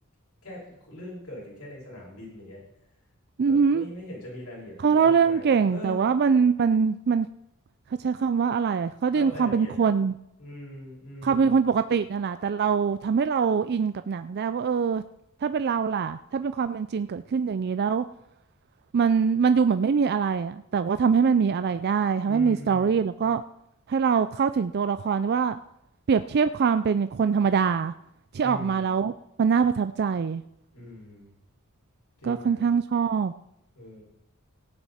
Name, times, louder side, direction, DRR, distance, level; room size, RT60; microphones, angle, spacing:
voice 1, 0.4-2.6 3.5-6.1 9.1-9.7 10.4-11.5 22.2-22.9 28.4-28.9 30.7-31.3 32.2-32.7 33.7-34.0, left 1 dB, 80° left, 6.0 m, -41 dB
voice 2, 3.4-3.9 4.8-7.3 8.0-10.1 11.2-15.0 15.4-18.1 18.9-23.4 23.9-25.6 26.1-27.9 28.3-29.1 29.4-30.4 32.2-33.3, right 6 dB, 50° right, 0.4 m, -23 dB
17.0 x 9.0 x 4.3 m
head